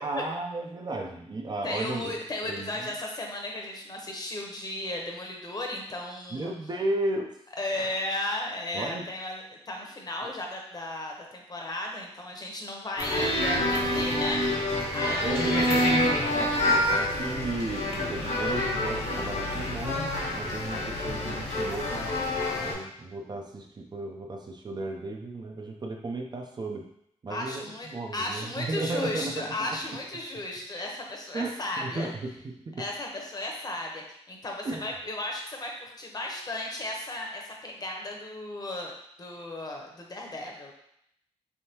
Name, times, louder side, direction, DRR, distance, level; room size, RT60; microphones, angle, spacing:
voice 1, 0.0-2.1 2.4-2.9 6.3-7.3 7.7-8.0 8.7-9.1 10.2-10.3 15.2-22.1 22.6-26.9 27.2-29.7 31.3-32.8 34.6-34.9, right 2 dB, 35° right, 2 dB, 0.5 m, -35 dB
voice 2, 1.6-6.5 7.6-14.4 14.9-16.0 27.3-32.1 32.8-38.9 39.2-40.7, left 1 dB, 35° left, 0 dB, 0.8 m, -35 dB
sound 1, 13.0-22.7, left 1 dB, 75° left, 1.1 m, -27 dB
3.5 x 3.4 x 2.8 m, 0.74 s
cardioid pair, 85°, 12 cm